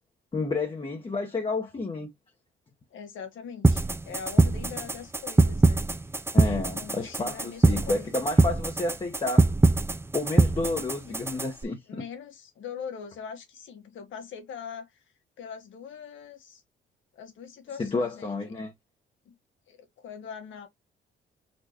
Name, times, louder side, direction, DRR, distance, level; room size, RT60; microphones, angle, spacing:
voice 1, 0.3-2.1 6.3-9.5 10.1-11.8 17.8-18.7, left 3 dB, 25° left, 1.2 m, -30 dB
voice 2, 2.9-6.1 6.4-8.2 11.1-11.2 11.9-15.0 15.4-16.6 17.1-18.5 19.3-19.4 19.7-20.7, left 7 dB, 75° left, 1.8 m, -42 dB
sound 1, 3.6-11.6, right 2 dB, 10° right, 0.6 m, -23 dB
4.4 x 4.1 x 2.9 m
cardioid pair, 90°, 20 cm